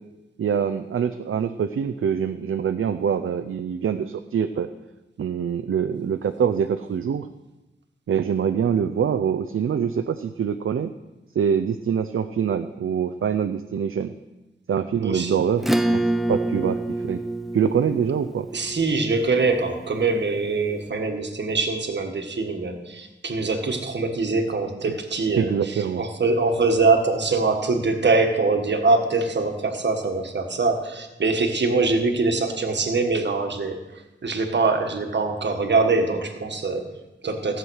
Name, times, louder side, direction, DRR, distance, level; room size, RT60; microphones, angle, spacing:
voice 1, 0.4-4.7 5.2-7.3 8.1-10.9 11.3-14.1 14.7-17.2 17.5-18.5 25.4-26.0, right 7 dB, 85° right, 9 dB, 0.6 m, -24 dB
voice 2, 15.0-15.5 18.5-37.6, right 3 dB, 60° right, 5 dB, 1.5 m, -23 dB
Acoustic guitar / Strum, 15.6-20.5, right 1 dB, ahead, 0.6 m, -27 dB
15.0 x 7.5 x 6.3 m, 1.0 s
wide cardioid pair, 120°, 21 cm